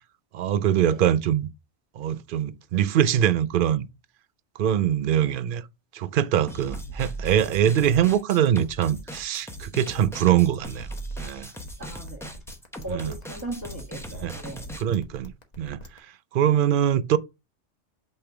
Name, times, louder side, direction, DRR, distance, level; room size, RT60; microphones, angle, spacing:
voice 1, 0.3-1.5 2.0-3.9 4.6-5.6 5.9-10.9 11.2-11.5 12.9-13.1 14.2-14.3 14.8-15.3 15.6-15.8 16.3-17.2, right 10 dB, 60° right, 0.6 m, -23 dB
sound 1, 6.5-14.8, right 1 dB, 5° left, 0.7 m, -38 dB
sound 2, 10.6-16.0, equal, 35° left, 1.1 m, -44 dB
voice 2, 11.8-12.3 12.8-14.7, right 1 dB, 15° right, 1.8 m, -38 dB
5.5 x 3.3 x 5.6 m
omnidirectional pair, 1.2 m